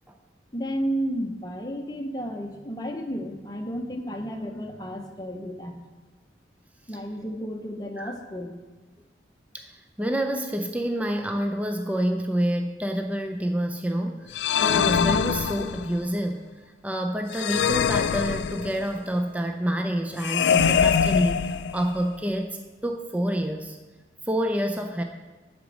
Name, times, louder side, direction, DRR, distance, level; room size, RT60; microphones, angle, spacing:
voice 1, 0.5-5.8 6.9-8.5, equal, 20° left, 2 dB, 0.8 m, -32 dB
voice 2, 9.5-16.5 16.8-22.6 22.8-23.8 24.2-25.0, equal, 10° right, 3 dB, 0.4 m, -28 dB
sound 1, 14.3-16.0 17.3-19.0 20.2-22.1, left 7 dB, 75° left, 0.3 m, -23 dB
7.9 x 5.1 x 6.3 m, 1.3 s
head